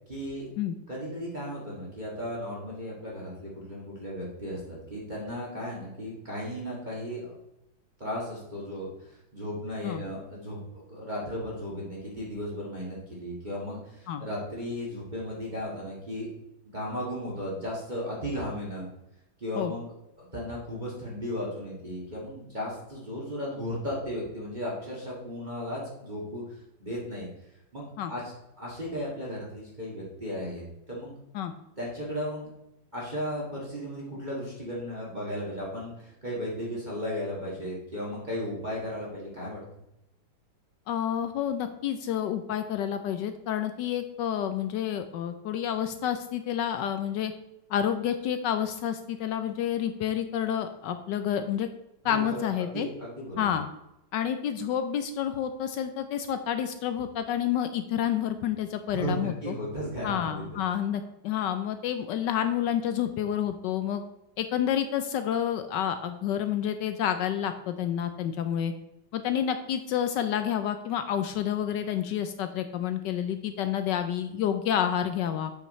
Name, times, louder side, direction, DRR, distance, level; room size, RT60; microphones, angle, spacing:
voice 1, 0.1-0.5 0.9-7.4 8.0-16.3 16.6-18.9 19.4-19.9 20.2-26.4 26.8-27.3 27.7-31.2 31.8-32.5 32.9-39.6 52.0-52.4 52.7-53.5 58.9-60.5, equal, 25° right, -5 dB, 1.9 m, -35 dB
voice 2, 40.9-47.3 47.7-51.7 52.0-52.9 53.4-53.7 54.1-59.5 60.0-64.0 64.4-68.7 69.1-75.5, left 9 dB, 70° left, 9 dB, 1.1 m, -29 dB
7.8 x 5.8 x 4.2 m, 0.87 s
omnidirectional pair, 2.2 m